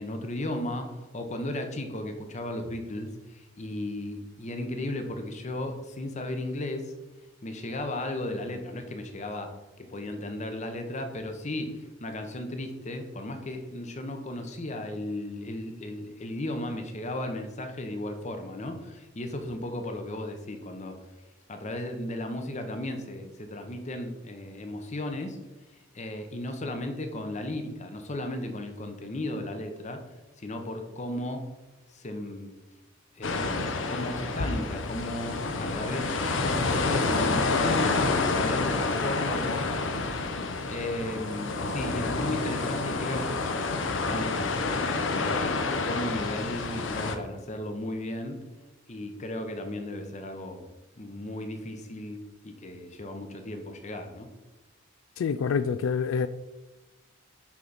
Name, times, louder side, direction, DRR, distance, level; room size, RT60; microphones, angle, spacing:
voice 1, 0.0-6.9 7.4-9.5 9.8-21.0 21.5-25.4 25.9-30.0 30.4-31.4 31.9-32.6 33.2-36.1 36.4-40.0 40.3-44.6 45.2-48.4 48.9-50.7 51.0-54.3, left 1 dB, 35° left, 0.8 m, -35 dB
sound 1, 33.2-47.2, left 3 dB, 70° left, 0.7 m, -28 dB
voice 2, 55.2-56.3, left 6 dB, 90° left, 0.3 m, -26 dB
6.0 x 5.8 x 4.0 m
head